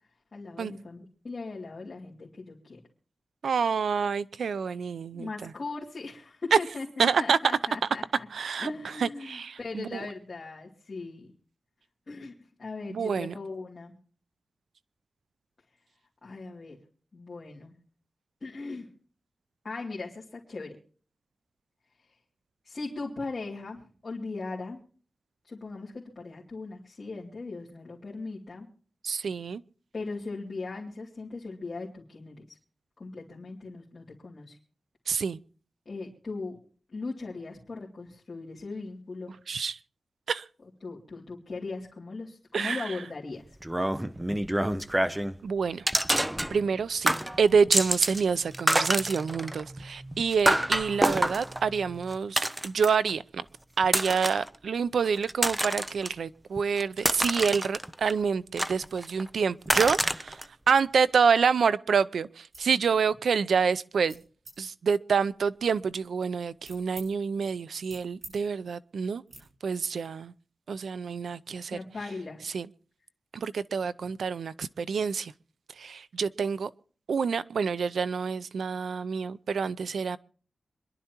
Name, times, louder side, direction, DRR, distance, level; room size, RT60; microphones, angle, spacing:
voice 1, 0.3-2.8 5.1-8.3 8.6-11.3 12.1-12.3 12.6-13.9 16.2-16.8 17.1-17.7 18.4-18.9 19.6-20.8 22.6-24.8 25.5-28.7 29.9-32.6 33.0-34.6 35.9-36.6 36.9-39.4 40.8-43.5 71.7-72.4, left 3 dB, 40° left, 2.7 m, -39 dB
voice 2, 3.4-5.5 6.5-6.6 7.0-7.4 8.3-10.1 12.9-13.3 29.0-29.6 35.1-35.4 39.5-39.8 40.3-40.4 42.5-43.0 45.4-45.9 46.5-53.4 53.8-64.2 64.6-69.2 69.6-70.3 70.7-71.8 72.4-72.7 73.3-75.3 75.8-76.7 77.1-80.2, right 6 dB, 90° right, 0.5 m, -27 dB
sound 1, 43.6-45.4 45.9-46.8 47.1-48.2 48.5-53.1 53.8-54.5 55.1-56.1 56.6-58.1 58.6-59.2 59.7-60.4, right 1 dB, 10° right, 0.5 m, -27 dB
sound 2, 62.5-62.7 63.2-63.5 64.1-64.6 65.2-67.1 67.5-68.4 68.6-68.8 69.3-69.4, right 2 dB, 50° right, 7.0 m, -50 dB
26.5 x 11.0 x 2.9 m
wide cardioid pair, 140°, 0 cm